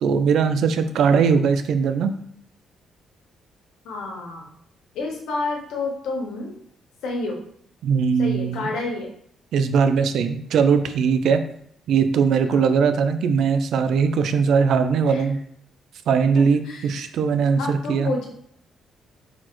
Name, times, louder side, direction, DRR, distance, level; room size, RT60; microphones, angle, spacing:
voice 1, 0.0-2.1 7.8-8.7 9.5-11.4 11.9-15.4 16.1-18.1, right 6 dB, 75° right, 9 dB, 0.4 m, -20 dB
voice 2, 3.8-4.5 4.9-6.5 7.0-7.4 8.2-9.1 12.4-12.7 15.0-15.2 16.6-17.1 17.6-18.3, left 3 dB, 85° left, 0 dB, 1.2 m, -29 dB
4.1 x 2.5 x 4.4 m, 0.66 s
cardioid pair, 90°, 0 cm